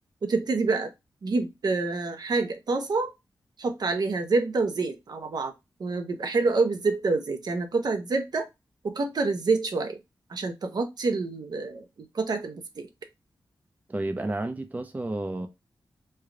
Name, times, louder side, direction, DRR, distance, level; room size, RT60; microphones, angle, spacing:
voice 1, 0.2-0.9 1.2-3.1 3.6-5.5 5.8-8.5 8.8-10.0 10.3-12.9, right 3 dB, 60° right, 0.6 m, -27 dB
voice 2, 13.9-15.5, right 2 dB, 20° right, 0.5 m, -31 dB
3.3 x 2.3 x 3.7 m
wide cardioid pair, 80°, 8 cm